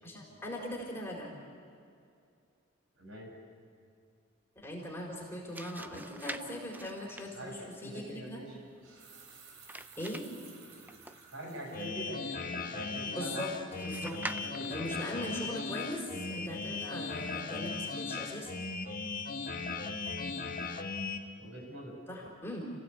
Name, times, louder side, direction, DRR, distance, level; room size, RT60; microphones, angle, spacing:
voice 1, 0.0-1.4 4.6-8.4 10.0-10.2 13.1-13.5 13.8-18.5 22.1-22.7, left 1 dB, 10° left, -2 dB, 4.3 m, -40 dB
voice 2, 3.0-3.3 7.3-8.6 11.3-13.6 13.9-14.9 20.7-20.8 21.4-21.9, right 1 dB, 65° right, 0 dB, 7.5 m, -44 dB
sound 1, 5.2-11.5 13.7-15.0, right 2 dB, 10° right, 0.5 m, -47 dB
sound 2, 7.4-7.6 8.6-11.9 12.4-12.5 13.0-13.3 13.5-13.7, right 5 dB, 90° right, 3.1 m, -56 dB
sound 3, 11.7-21.2, left 4 dB, 40° left, 1.6 m, -38 dB
29.5 x 16.0 x 8.5 m, 2.5 s
head